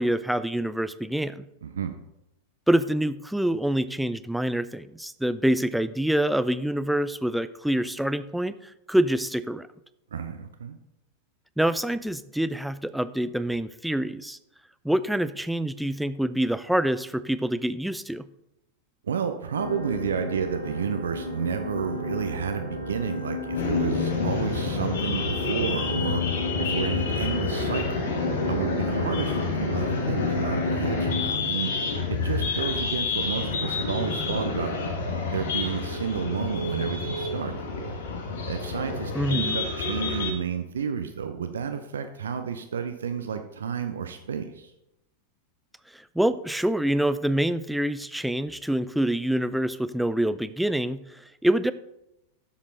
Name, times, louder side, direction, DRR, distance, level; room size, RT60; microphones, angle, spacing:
voice 1, 0.0-1.5 2.7-9.7 11.6-14.4 14.8-18.3 39.1-39.6 45.9-51.7, right 1 dB, ahead, 14 dB, 0.4 m, -26 dB
voice 2, 1.6-2.0 10.1-10.8 19.0-26.2 26.6-28.0 28.5-31.7 32.1-34.8 35.3-37.6 38.5-44.7, right 7 dB, 65° right, 8 dB, 0.7 m, -31 dB
sound 1, 19.5-31.3, left 2 dB, 80° left, 2.0 m, -32 dB
sound 2, 23.6-40.3, left 4 dB, 60° left, 1.4 m, -29 dB
11.0 x 7.3 x 3.9 m, 0.87 s
figure-of-eight pair, 90°, 0 cm